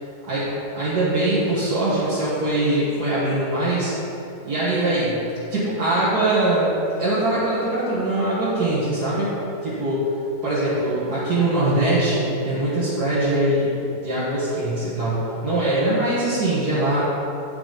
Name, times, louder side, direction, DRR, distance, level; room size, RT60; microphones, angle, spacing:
voice 1, 0.7-3.9 4.4-5.2 5.5-9.3 9.6-10.1 10.4-13.7 14.0-17.0, right 1 dB, 85° right, -11 dB, 2.3 m, -22 dB
8.6 x 5.9 x 5.1 m, 2.8 s
omnidirectional pair, 1.7 m